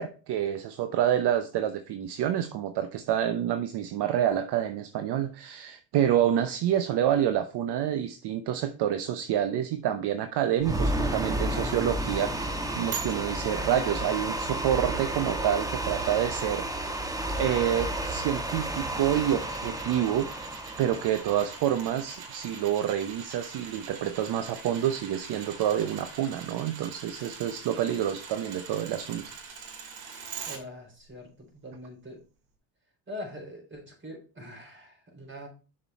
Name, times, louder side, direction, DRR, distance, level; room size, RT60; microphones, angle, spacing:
voice 1, 0.0-16.9 17.4-20.4 20.8-29.2, right 10 dB, 55° right, 9 dB, 0.9 m, -28 dB
sound 1, 10.6-22.8, right 1 dB, 10° right, 1.4 m, -32 dB
sound 2, 12.9-30.6 31.0-31.1, right 6 dB, 70° right, 2.6 m, -44 dB
voice 2, 30.5-32.2 33.1-35.5, left 1 dB, 25° right, 2 dB, 4.1 m, -43 dB
6.9 x 5.5 x 4.2 m, 0.35 s
supercardioid pair, 80°, 47 cm